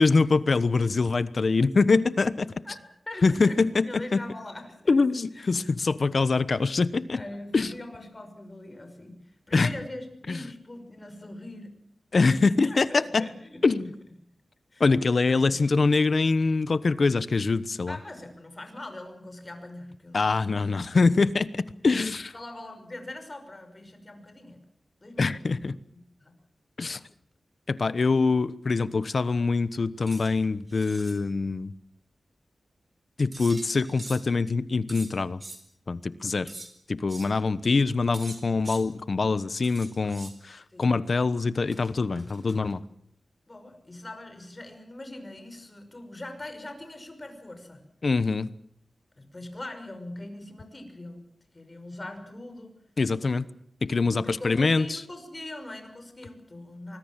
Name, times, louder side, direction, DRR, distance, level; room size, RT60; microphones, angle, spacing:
voice 1, 0.0-2.5 3.2-4.2 4.9-7.2 7.5-7.7 9.5-9.7 10.3-10.4 12.1-13.3 13.6-13.9 14.8-18.0 20.1-22.3 25.2-25.8 26.8-27.0 27.7-31.7 33.2-35.4 35.9-36.5 36.9-42.8 48.0-48.5 53.0-53.4 53.8-55.0, left 4 dB, 50° left, 15 dB, 1.1 m, -24 dB
voice 2, 2.6-4.8 5.4-5.6 7.1-11.8 12.3-13.9 14.7-14.8 17.9-20.2 22.3-24.6 25.0-25.6 26.2-26.3 40.7-40.9 43.5-47.8 49.2-51.3 51.5-52.7 53.9-57.0, left 1 dB, 25° left, 7 dB, 5.9 m, -42 dB
sound 1, 30.1-30.3 30.7-31.2 33.3-34.3 34.9-35.6 36.5-36.7 37.1-37.3 38.1-38.8 39.6-40.4 41.7-42.8, right 2 dB, 30° right, 4.4 m, -43 dB
25.0 x 21.0 x 7.5 m, 0.67 s
wide cardioid pair, 105°, 0 cm